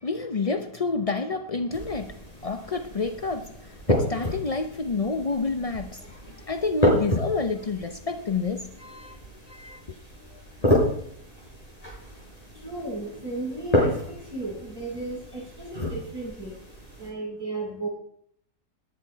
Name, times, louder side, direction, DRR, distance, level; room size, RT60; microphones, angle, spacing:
voice 1, 0.0-3.6 3.9-9.2 9.5-9.8, left 3 dB, 65° left, 8 dB, 0.3 m, -29 dB
sound 1, 1.7-17.1, left 1 dB, 20° left, 6.5 m, -30 dB
voice 2, 12.5-16.6 17.0-17.9, right 2 dB, 10° right, -5 dB, 8.1 m, -34 dB
19.5 x 10.0 x 4.6 m, 0.68 s
omnidirectional pair, 1.9 m